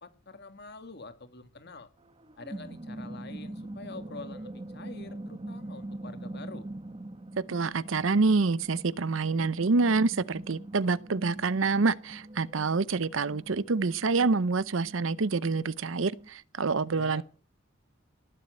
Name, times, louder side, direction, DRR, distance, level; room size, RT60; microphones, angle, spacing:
voice 1, 0.0-1.9 2.4-6.7 16.9-17.2, left 3 dB, 55° left, 1.9 m, -46 dB
sound 1, 2.0-16.3, right 1 dB, 25° right, 1.1 m, -43 dB
voice 2, 7.5-17.2, right 4 dB, 70° right, 0.7 m, -27 dB
19.0 x 7.5 x 8.9 m
head